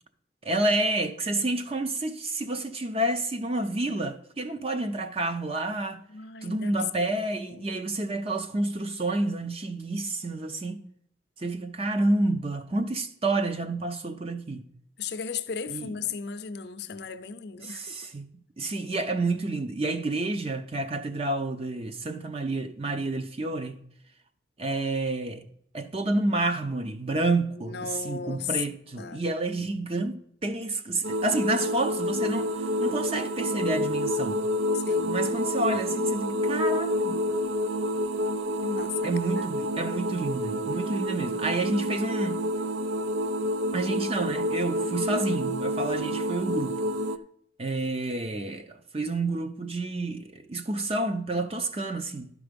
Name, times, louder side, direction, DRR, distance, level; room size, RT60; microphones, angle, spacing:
voice 1, 0.4-6.0 6.4-10.8 11.4-14.6 15.7-15.9 17.6-18.3 18.6-23.8 24.6-25.4 25.7-34.4 35.1-37.2 39.0-42.4 43.7-46.8 47.6-52.3, right 2 dB, 30° right, 0.6 m, -29 dB
voice 2, 6.1-7.7 15.0-17.9 27.5-28.5 29.0-29.3 31.6-31.8 34.7-35.1 35.7-35.8 38.6-39.1 39.4-39.5, left 6 dB, 55° left, 0.6 m, -36 dB
sound 1, 31.0-47.2, equal, 85° right, 0.5 m, -28 dB
12.0 x 4.9 x 5.1 m
head